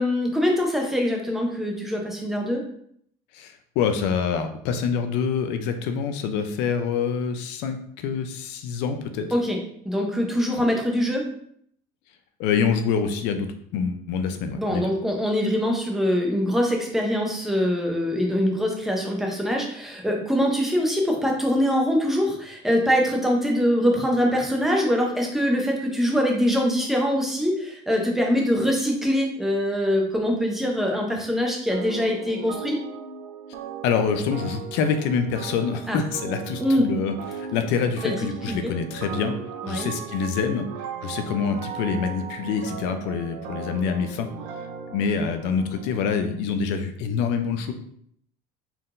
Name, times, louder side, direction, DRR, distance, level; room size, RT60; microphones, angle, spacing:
voice 1, 0.0-2.6 9.3-9.6 9.8-11.2 14.6-32.8 35.9-36.0 36.6-36.9 38.0-38.1 38.5-38.7 39.6-39.9, equal, ahead, 0 dB, 0.7 m, -23 dB
voice 2, 3.3-9.3 12.4-14.9 33.8-39.3 39.7-44.3 44.9-47.7, left 6 dB, 65° left, 7 dB, 0.6 m, -26 dB
sound 1, 31.7-46.3, right 7 dB, 80° right, 0.6 m, -37 dB
4.4 x 3.7 x 2.5 m, 0.66 s
cardioid pair, 160°, 20 cm